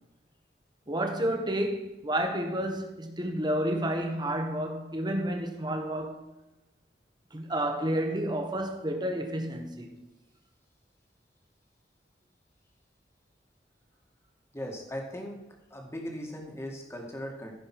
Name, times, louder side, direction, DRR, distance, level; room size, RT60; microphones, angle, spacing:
voice 1, 0.9-6.2 7.3-10.0, right 1 dB, 25° right, 1.5 m, -30 dB
voice 2, 14.5-15.4 15.7-17.5, equal, 15° left, 2.0 m, -38 dB
15.0 x 5.1 x 6.1 m
head